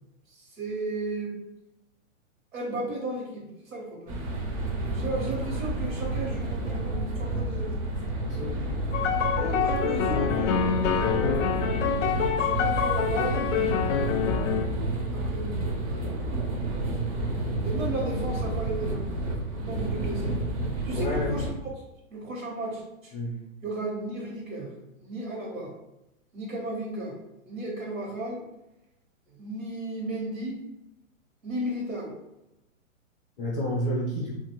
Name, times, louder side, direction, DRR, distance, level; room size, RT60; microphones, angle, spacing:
voice 1, 0.3-1.4 2.5-4.2 4.9-7.7 8.9-9.0 9.4-10.6 12.2-13.9 15.1-16.0 17.6-19.1 19.5-20.4 20.8-21.7 22.1-23.1 23.6-24.7 25.0-25.7 26.3-27.2 27.4-28.4 29.3-30.6 31.4-32.1, right 2 dB, 90° right, -5 dB, 1.2 m, -34 dB
sound 1, 4.1-21.5, right 2 dB, 30° right, 0.5 m, -30 dB
voice 2, 8.3-8.6 11.1-11.4 21.0-21.3 23.1-23.4 33.4-34.3, equal, 25° left, -4 dB, 0.5 m, -30 dB
sound 2, 8.9-14.7, left 7 dB, 70° left, 0.5 m, -26 dB
2.7 x 2.5 x 2.9 m, 0.89 s
hypercardioid pair, 145°, 39 cm